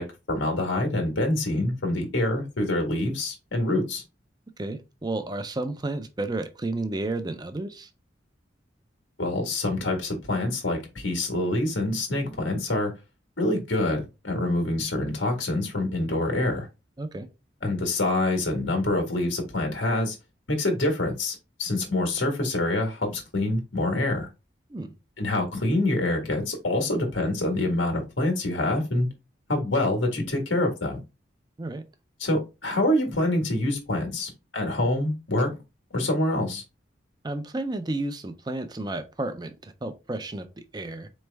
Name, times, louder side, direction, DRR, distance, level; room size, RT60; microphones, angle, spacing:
voice 1, 0.0-4.0 9.2-12.9 13.4-16.7 17.6-20.1 20.5-24.3 25.2-29.1 29.5-31.0 32.2-35.6 35.9-36.6, left 1 dB, 90° left, 1.6 m, -26 dB
voice 2, 4.6-7.9 17.0-17.3 24.7-24.9 31.6-31.8 37.2-41.1, right 2 dB, 20° right, 0.5 m, -32 dB
4.3 x 3.2 x 3.3 m
head